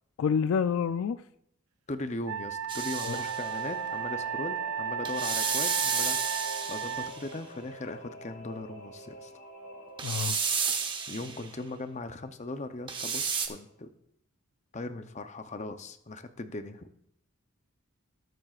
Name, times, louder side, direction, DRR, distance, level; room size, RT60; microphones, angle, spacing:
voice 1, 0.2-1.2 3.0-3.2 10.0-10.4, left 6 dB, 70° left, 0.3 m, -28 dB
voice 2, 1.9-9.3 11.1-13.9 14.7-16.9, left 2 dB, 30° left, 0.6 m, -39 dB
Wind instrument woodwind instrument, 2.3-7.1, right 8 dB, 75° right, 0.3 m, -34 dB
sound 1, 2.7-3.6 5.0-7.3 10.0-11.5 12.9-13.5, right 6 dB, 20° right, 0.9 m, -31 dB
Singing / Musical instrument, 3.1-13.1 13.4-13.5, right 1 dB, 90° left, 2.3 m, -47 dB
20.0 x 7.7 x 2.4 m
head